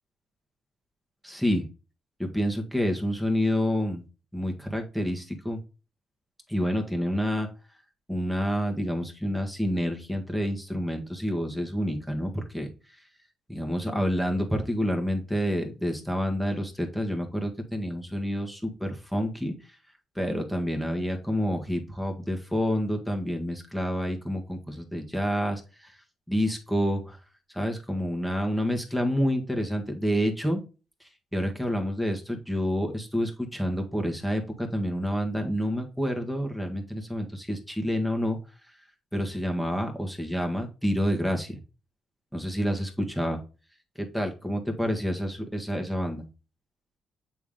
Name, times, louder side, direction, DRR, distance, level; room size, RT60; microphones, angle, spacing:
voice 1, 1.2-1.6 2.2-4.0 4.3-5.6 6.5-7.5 8.1-12.7 13.5-19.5 20.2-25.9 26.3-27.2 27.5-30.6 31.3-38.4 39.1-41.6 42.3-43.4 44.0-46.2, equal, ahead, 3 dB, 1.6 m, -28 dB
8.4 x 3.5 x 3.6 m, 0.32 s
cardioid pair, 90°, 0 cm